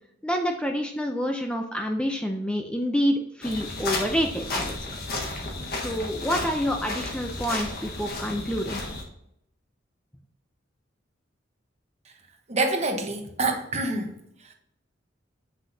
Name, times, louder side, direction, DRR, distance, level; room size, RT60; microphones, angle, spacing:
voice 1, 0.2-4.6 5.7-8.8, equal, 5° left, 4 dB, 0.5 m, -27 dB
sound 1, 3.4-9.0, left 2 dB, 55° left, 1.4 m, -33 dB
voice 2, 12.5-14.1, right 2 dB, 35° right, 4 dB, 1.1 m, -26 dB
7.7 x 6.2 x 2.7 m, 0.76 s
head